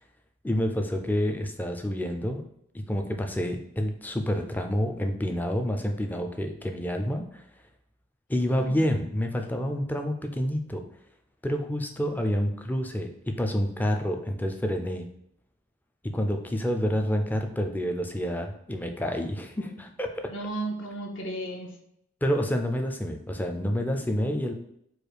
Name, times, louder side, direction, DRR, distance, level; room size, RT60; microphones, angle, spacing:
voice 1, 0.4-2.4 2.7-7.4 8.3-10.8 11.4-15.1 16.0-20.1 22.2-24.5, equal, 10° left, 5 dB, 0.4 m, -28 dB
voice 2, 20.3-21.8, right 2 dB, 60° left, 1 dB, 0.9 m, -34 dB
4.7 x 2.3 x 4.8 m, 0.73 s
head